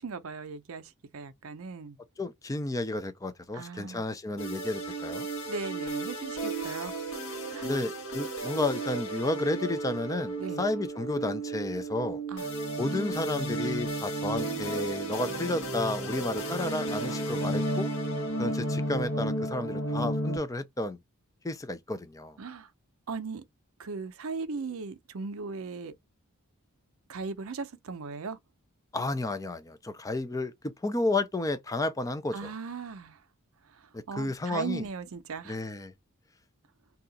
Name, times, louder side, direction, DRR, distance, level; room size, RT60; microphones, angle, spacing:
voice 1, 0.0-2.0 3.5-4.1 5.5-7.3 7.5-7.7 10.4-10.6 12.3-12.5 22.4-22.7 23.1-23.4 23.8-25.9 27.1-28.4 32.3-33.2 33.6-35.6, right 4 dB, 65° right, 0.6 m, -38 dB
voice 2, 2.2-5.3 7.6-12.2 12.8-17.9 18.4-21.0 21.4-22.4 28.9-32.5 33.9-34.8 35.5-35.9, left 2 dB, 15° left, 0.4 m, -32 dB
sound 1, 4.4-20.4, right 2 dB, 65° left, 1.3 m, -33 dB
2.8 x 2.4 x 3.9 m
head